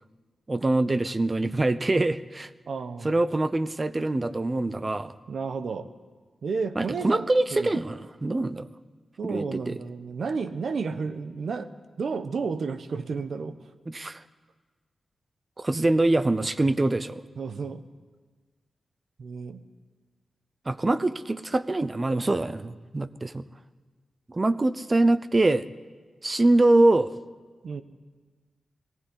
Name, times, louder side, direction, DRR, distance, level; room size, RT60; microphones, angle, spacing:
voice 1, 0.5-2.5 3.0-5.1 6.8-8.7 9.2-9.7 13.9-14.2 15.6-17.2 20.7-23.4 24.3-25.7 26.2-27.1, right 2 dB, 25° right, 14 dB, 0.6 m, -24 dB
voice 2, 2.7-3.1 5.3-5.9 6.4-7.8 9.2-11.7 12.0-13.6 16.8-16.9 17.4-17.8 19.2-19.6 27.6-27.8, right 5 dB, 70° right, 11 dB, 1.0 m, -32 dB
19.5 x 15.5 x 9.8 m, 1.4 s
wide cardioid pair, 135°, 0 cm